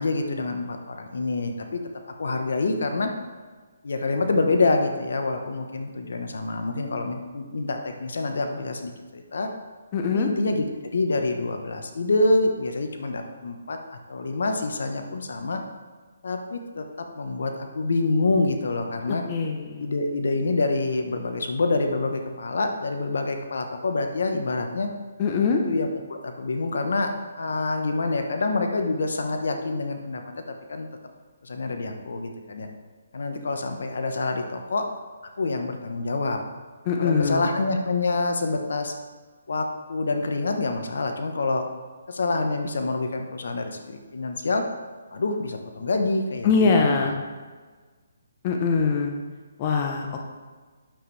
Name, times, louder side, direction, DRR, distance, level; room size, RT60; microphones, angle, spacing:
voice 1, 0.0-1.8 2.1-3.1 3.8-9.5 10.1-10.6 10.9-15.6 16.2-19.2 19.8-24.9 25.6-30.2 30.5-30.9 31.4-32.7 33.1-34.9 35.4-36.4 37.0-38.9 39.5-41.6 42.1-44.6 45.1-46.7 47.0-47.1, left 3 dB, 75° left, 5 dB, 1.0 m, -26 dB
voice 2, 9.9-10.3 19.1-19.9 25.2-25.6 36.9-37.5 46.4-47.2 48.4-49.1 49.6-50.1, left 5 dB, 30° left, 2 dB, 0.8 m, -22 dB
9.1 x 7.1 x 3.3 m, 1.4 s
hypercardioid pair, 160°, 0 cm